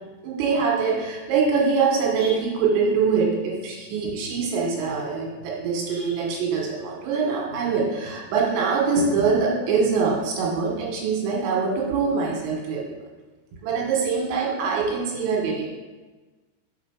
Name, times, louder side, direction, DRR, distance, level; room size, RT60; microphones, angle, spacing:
voice 1, 0.2-12.9 13.6-15.7, right 5 dB, 75° right, -1 dB, 3.4 m, -24 dB
7.5 x 4.9 x 5.1 m, 1.3 s
omnidirectional pair, 5.6 m